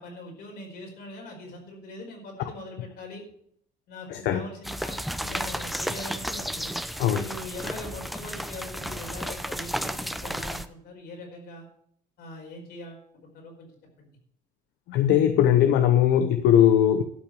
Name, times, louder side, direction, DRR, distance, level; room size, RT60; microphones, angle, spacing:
voice 1, 0.0-3.2 3.9-6.7 7.1-11.6 12.2-13.7 14.0-14.1, left 2 dB, 70° left, 1 dB, 4.8 m, -42 dB
sound 1, 4.6-10.7, equal, ahead, 0.7 m, -33 dB
voice 2, 14.9-17.0, left 10 dB, 85° left, 9 dB, 0.9 m, -20 dB
12.5 x 5.9 x 8.4 m, 0.67 s
cardioid pair, 110°, 17 cm